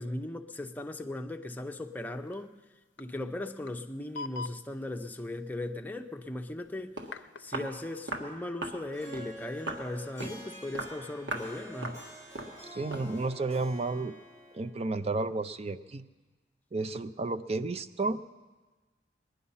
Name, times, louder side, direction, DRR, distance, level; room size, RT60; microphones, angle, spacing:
voice 1, 0.0-2.5 3.0-7.0 7.4-12.0, left 1 dB, 10° left, 0.7 m, -38 dB
sound 1, 2.3-2.4 2.7-2.8 3.0-3.1 3.7-3.8 4.2-4.6 7.1-7.5, left 4 dB, 70° left, 0.5 m, -40 dB
Walk footsteps, 6.6-6.7 7.0-7.1 7.5-7.7 8.1-8.3 8.6-8.8 9.1-9.3 9.7-9.9 10.2-10.4 10.7-11.0 11.3-11.5 11.8-12.0 12.3-12.6 12.9-13.1, right 2 dB, 85° right, 1.6 m, -37 dB
Harp, 8.9-14.7, right 1 dB, 15° right, 5.1 m, -48 dB
voice 2, 12.7-14.2 14.5-16.1 16.7-18.2, right 3 dB, 35° right, 0.5 m, -32 dB
20.5 x 10.5 x 5.6 m
head